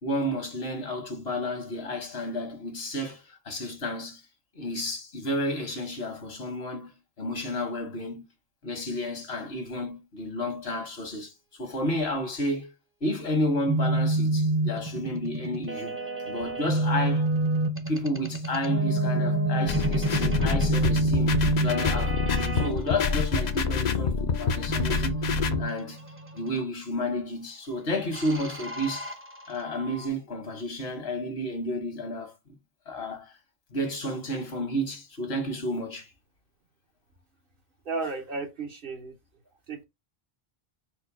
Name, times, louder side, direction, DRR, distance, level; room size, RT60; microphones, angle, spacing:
voice 1, 0.0-4.2 4.5-6.9 7.2-8.3 8.6-11.3 11.6-12.7 13.0-16.0 16.3-17.3 17.9-25.1 25.6-26.0 26.3-29.1 29.5-32.5 32.9-33.4 33.7-36.1, left 1 dB, 75° left, 1.7 m, -31 dB
sound 1, 13.7-22.7 24.7-26.6 28.1-30.1, right 2 dB, 15° right, 0.5 m, -28 dB
sound 2, 19.7-25.6, left 5 dB, 50° left, 0.6 m, -27 dB
voice 2, 37.8-39.2 39.7-39.8, right 3 dB, 60° right, 1.2 m, -33 dB
4.4 x 2.2 x 4.6 m
omnidirectional pair, 1.1 m